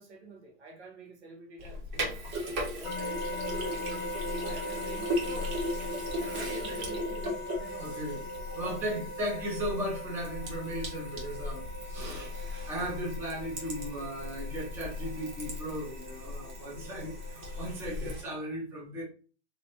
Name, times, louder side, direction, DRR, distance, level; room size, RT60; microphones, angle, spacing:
voice 1, 0.0-2.3 2.7-5.6 5.9-8.0 8.5-9.1 16.7-17.0, right 2 dB, 70° right, 1.2 m, -48 dB
Sink (filling or washing), 1.6-18.2, left 1 dB, 40° right, 1.5 m, -37 dB
sound 1, 2.8-17.8, left 1 dB, 50° left, 0.6 m, -41 dB
voice 2, 7.8-19.0, equal, 5° right, 0.6 m, -36 dB
3.3 x 2.9 x 2.8 m
hypercardioid pair, 155°, 34 cm